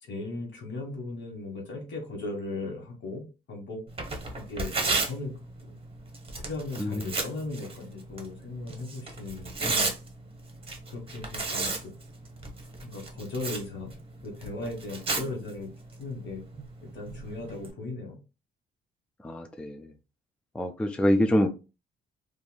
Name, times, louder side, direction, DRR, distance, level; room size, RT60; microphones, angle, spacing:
voice 1, 0.1-3.2 3.5-3.8 4.3-5.3 5.6-5.8 6.4-9.9 10.9-11.9 12.8-13.9 14.2-15.7 16.0-16.4 16.8-18.2, left 2 dB, 65° left, 1.3 m, -37 dB
Tearing, 3.9-17.7, right 3 dB, 30° right, 0.9 m, -35 dB
voice 2, 19.2-19.9 20.6-21.5, equal, 5° left, 0.3 m, -25 dB
3.0 x 2.5 x 2.2 m
cardioid pair, 90°, 20 cm